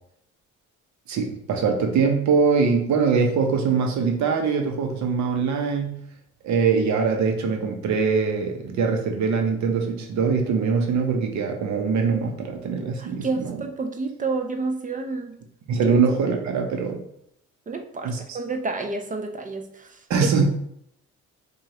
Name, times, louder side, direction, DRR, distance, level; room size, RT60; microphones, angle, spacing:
voice 1, 1.1-6.0 6.4-13.6 15.7-17.0 18.0-18.4 20.1-20.4, right 5 dB, 65° right, 3 dB, 0.8 m, -23 dB
voice 2, 13.0-15.4 17.7-20.3, right 3 dB, 25° right, 5 dB, 0.4 m, -30 dB
4.7 x 2.4 x 2.9 m, 0.73 s
cardioid pair, 90°, 30 cm